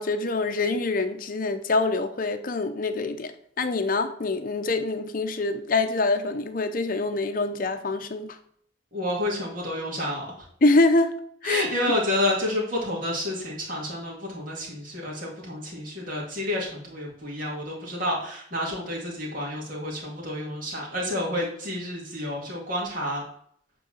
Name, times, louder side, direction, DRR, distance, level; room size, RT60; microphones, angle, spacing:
voice 1, 0.0-8.4 10.6-11.7, left 3 dB, 45° left, 0.7 m, -25 dB
voice 2, 8.9-10.3 11.4-23.2, left 1 dB, 45° right, 2.3 m, -29 dB
8.3 x 3.9 x 6.3 m
head